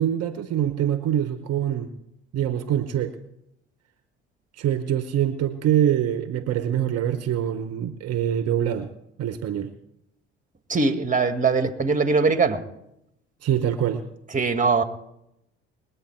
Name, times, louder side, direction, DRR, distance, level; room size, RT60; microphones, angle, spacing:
voice 1, 0.0-1.9 2.3-3.1 4.5-8.9 9.2-9.7 13.4-14.0, right 10 dB, 50° right, 10 dB, 1.0 m, -24 dB
voice 2, 10.7-12.6 14.3-14.8, right 4 dB, 25° right, 8 dB, 1.5 m, -21 dB
20.5 x 8.5 x 4.5 m, 0.81 s
hypercardioid pair, 55°, 32 cm